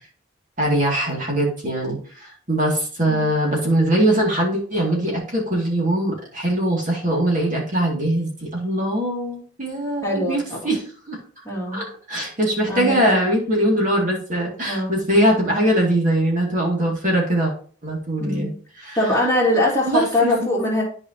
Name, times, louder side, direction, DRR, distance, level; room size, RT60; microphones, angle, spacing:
voice 1, 0.6-11.2 11.7-17.5 17.8-18.5 18.8-19.0 19.9-20.3, right 1 dB, 40° right, -2 dB, 2.3 m, -21 dB
voice 2, 10.0-10.7 11.4-11.8 12.7-13.2 14.7-15.0 18.2-18.5 19.0-20.8, left 1 dB, 15° left, -5 dB, 2.7 m, -22 dB
12.0 x 5.0 x 2.9 m, 0.42 s
head